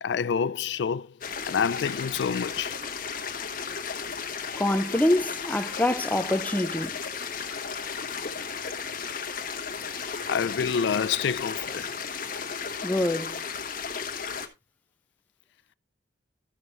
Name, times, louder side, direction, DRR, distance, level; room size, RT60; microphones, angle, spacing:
voice 1, 0.0-1.1 1.5-2.7 10.3-11.9, left 6 dB, 75° left, 0.4 m, -27 dB
sound 1, 1.2-14.5, left 6 dB, 50° left, 1.2 m, -34 dB
voice 2, 4.6-7.0 12.8-13.4, left 1 dB, 10° left, 0.4 m, -25 dB
12.5 x 6.2 x 3.2 m
head